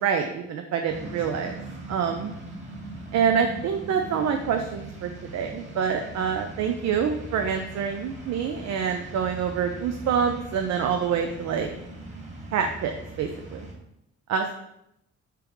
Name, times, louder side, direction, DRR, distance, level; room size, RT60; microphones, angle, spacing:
voice 1, 0.0-1.6 1.9-2.3 3.1-11.7 12.5-13.7 14.3-14.6, right 7 dB, 60° right, 5 dB, 0.5 m, -26 dB
sound 1, 0.9-13.7, right 2 dB, 20° right, 1.5 m, -40 dB
3.3 x 3.1 x 4.8 m, 0.81 s
cardioid pair, 90°, 30 cm